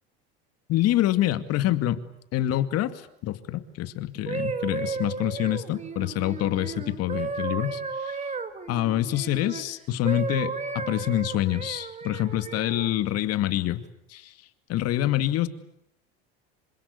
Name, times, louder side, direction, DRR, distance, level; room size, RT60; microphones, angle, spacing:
voice 1, 0.7-2.0 2.3-8.2 8.7-13.8 14.1-14.3 14.7-15.5, left 13 dB, 55° left, 11 dB, 2.4 m, -26 dB
sound 1, 4.1-9.6 10.0-12.9 13.6-13.8, right 4 dB, 25° right, 3.2 m, -34 dB
27.5 x 25.5 x 8.3 m, 0.77 s
supercardioid pair, 95°, 30 cm